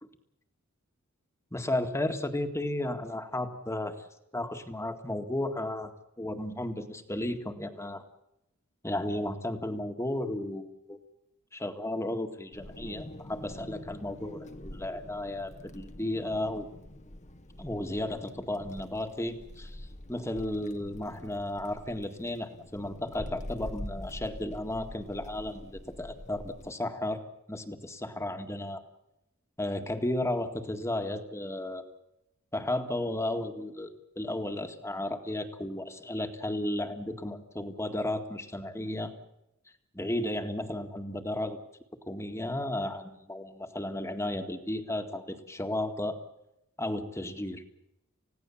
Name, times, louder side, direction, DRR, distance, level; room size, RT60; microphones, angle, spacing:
voice 1, 1.5-3.9 4.3-5.9 6.2-8.0 8.8-11.0 11.5-16.7 17.6-19.8 20.1-27.2 27.5-28.8 29.6-31.8 32.5-39.1 39.9-41.6 42.1-46.2 46.8-47.6, left 1 dB, 15° left, 6 dB, 1.9 m, -34 dB
Wind, 12.5-26.7, left 1 dB, 35° left, 1.3 m, -45 dB
30.0 x 16.5 x 7.3 m, 0.85 s
head